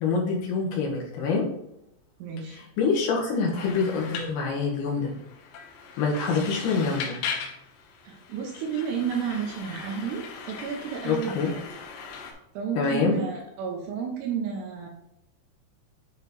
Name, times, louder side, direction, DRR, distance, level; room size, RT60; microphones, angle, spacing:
voice 1, 0.0-1.4 2.8-5.1 6.0-7.2 11.0-11.5 12.8-13.2, left 4 dB, 70° left, -1 dB, 2.2 m, -25 dB
voice 2, 2.2-2.6 8.0-11.5 12.5-14.9, right 7 dB, 75° right, 0 dB, 2.7 m, -32 dB
sound 1, 3.6-12.3, left 6 dB, 85° left, 3.3 m, -39 dB
9.1 x 3.1 x 4.1 m, 0.81 s
omnidirectional pair, 5.5 m